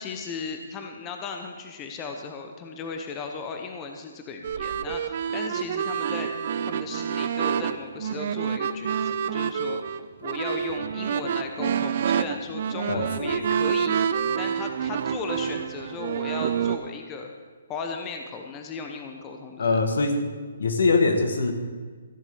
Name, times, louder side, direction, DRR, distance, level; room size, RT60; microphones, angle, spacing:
voice 1, 0.0-6.3 6.6-9.8 10.2-17.3 17.7-19.8, left 4 dB, 20° left, 4 dB, 0.9 m, -36 dB
sound 1, 4.4-16.8, right 8 dB, 45° right, 0.6 m, -27 dB
voice 2, 12.9-13.4 19.6-20.2 20.6-21.5, left 3 dB, 75° left, 6 dB, 1.9 m, -23 dB
15.0 x 7.2 x 7.0 m, 1.5 s
hypercardioid pair, 165°, 0 cm